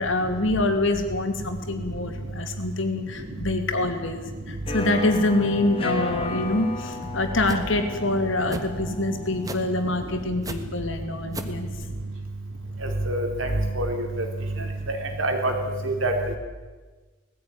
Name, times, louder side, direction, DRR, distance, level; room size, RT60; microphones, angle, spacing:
voice 1, 0.0-11.7, left 2 dB, 70° left, 6 dB, 2.7 m, -25 dB
sound 1, 4.7-10.3, left 3 dB, 25° left, 1.9 m, -35 dB
sound 2, 7.5-7.7 8.5-8.7 9.4-9.7 10.4-10.6 11.3-11.6, right 2 dB, 20° right, 1.4 m, -34 dB
voice 2, 13.1-13.5 13.7-13.9 14.9-15.5 15.8-16.1, right 2 dB, 80° right, 3 dB, 3.7 m, -26 dB
19.5 x 15.0 x 9.9 m, 1.3 s
head